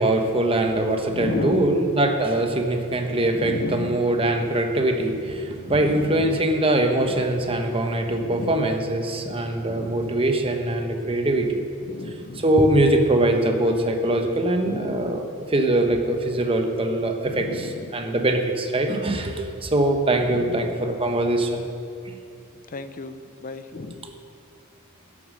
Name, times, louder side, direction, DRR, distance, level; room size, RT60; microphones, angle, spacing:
voice 1, 0.0-11.6 12.4-21.7 22.1-22.2, right 1 dB, 25° right, 4 dB, 0.9 m, -22 dB
voice 2, 1.1-1.8 3.3-4.1 5.6-6.5 8.2-8.6 9.6-10.1 11.9-12.5 14.6-15.2 17.3-18.0 20.3-20.7 22.7-24.0, left 2 dB, 40° left, 10 dB, 0.5 m, -33 dB
11.5 x 7.3 x 6.2 m, 2.6 s
head